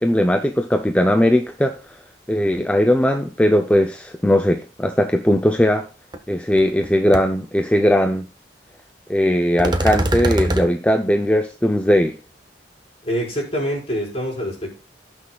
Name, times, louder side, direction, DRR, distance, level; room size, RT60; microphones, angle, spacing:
voice 1, 0.0-2.0 2.3-5.9 6.3-8.3 9.1-12.2, equal, 5° left, 0.5 m, -18 dB
sound 1, 6.1-6.2 6.6-6.9 7.1-7.2 9.6-10.7, right 1 dB, 25° right, 0.9 m, -22 dB
voice 2, 13.0-14.8, equal, 35° left, 4.6 m, -25 dB
17.5 x 6.2 x 2.3 m
head